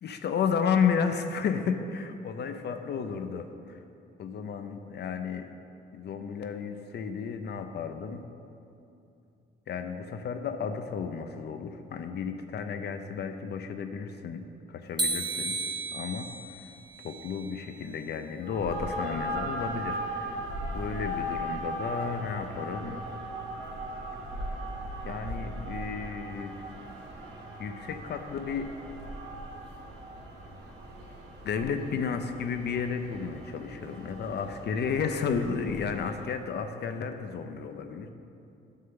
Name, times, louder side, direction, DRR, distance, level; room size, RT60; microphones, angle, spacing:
voice 1, 0.0-3.8 4.2-5.5 5.9-8.3 9.7-16.3 16.6-16.7 17.0-20.4 20.7-23.0 25.0-26.7 27.6-28.7 31.4-38.1, left 6 dB, 60° left, 7 dB, 0.6 m, -32 dB
sound 1, 15.0-18.1, right 2 dB, 20° right, 0.7 m, -34 dB
sound 2, 18.4-36.3, right 1 dB, 80° right, 1.4 m, -38 dB
9.7 x 3.7 x 6.8 m, 2.6 s
cardioid pair, 90°, 20 cm